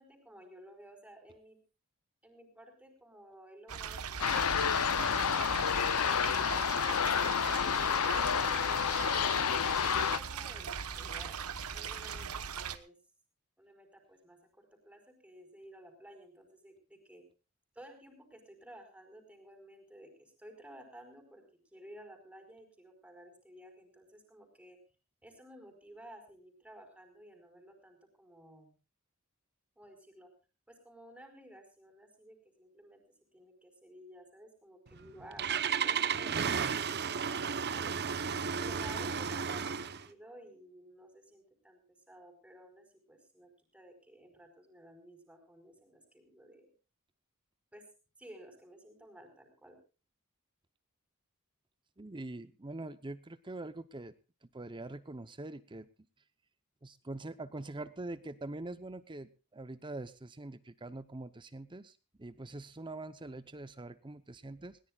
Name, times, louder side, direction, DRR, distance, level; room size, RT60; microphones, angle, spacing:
voice 1, 0.0-1.6 2.2-6.9 7.4-9.0 9.7-11.4 11.7-13.0 13.6-17.3 17.7-21.4 21.7-24.8 25.2-28.7 29.8-30.3 30.7-33.0 33.3-38.2 38.6-46.7 47.7-47.8 48.2-49.8, right 1 dB, 5° right, 4 dB, 4.9 m, -55 dB
sound 1, 3.7-12.8, right 7 dB, 85° right, 1.2 m, -40 dB
sound 2, 4.2-10.2, left 7 dB, 75° left, 0.7 m, -29 dB
Engine starting, 34.9-40.1, right 6 dB, 50° right, 0.9 m, -33 dB
voice 2, 52.0-54.1 54.5-55.9 56.8-64.8, right 2 dB, 20° right, 13 dB, 0.8 m, -44 dB
21.0 x 18.0 x 2.4 m, 0.34 s
head